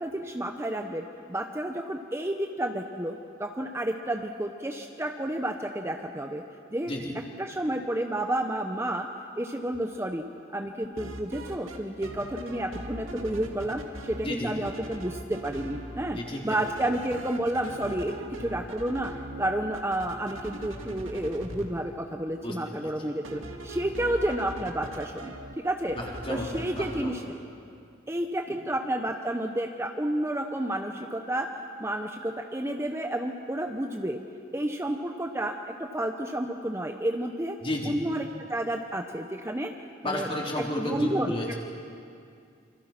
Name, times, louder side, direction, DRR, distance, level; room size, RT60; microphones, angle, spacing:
voice 1, 0.0-6.4 6.7-6.9 7.4-9.1 9.4-10.2 10.5-16.2 16.4-18.1 18.4-19.1 19.4-25.3 25.6-26.0 26.3-27.2 28.1-31.5 31.8-34.2 34.5-37.6 37.8-39.7 40.0-40.3 40.8-41.4, right 1 dB, 15° right, 4 dB, 0.9 m, -30 dB
voice 2, 6.9-7.2 14.2-14.5 16.1-16.6 22.4-23.2 25.9-27.2 28.5-28.6 37.6-38.0 40.0-41.6, left 1 dB, 30° left, -2 dB, 4.1 m, -33 dB
sound 1, 10.8-11.8 12.0-14.3 14.6-16.2 16.5-21.6 23.2-25.5 25.9-27.0, right 1 dB, 90° right, 2.3 m, -40 dB
27.0 x 25.5 x 6.0 m, 2.4 s
head